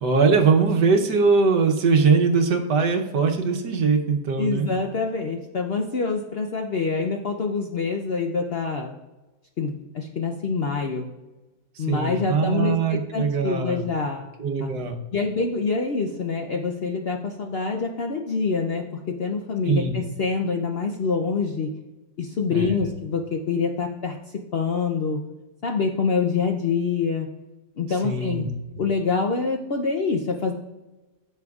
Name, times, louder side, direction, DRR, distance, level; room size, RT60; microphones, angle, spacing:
voice 1, 0.0-4.7 11.8-13.9 14.4-15.0 19.7-19.9 22.5-22.8 28.0-28.5, right 4 dB, 80° right, 4 dB, 1.5 m, -21 dB
voice 2, 4.4-9.0 9.6-11.1 11.8-14.3 14.6-14.7 15.1-21.7 22.2-25.2 25.6-27.3 27.8-28.4 28.8-30.5, left 4 dB, 65° left, 3 dB, 0.6 m, -26 dB
15.5 x 6.8 x 2.4 m, 1.1 s
omnidirectional pair, 1.8 m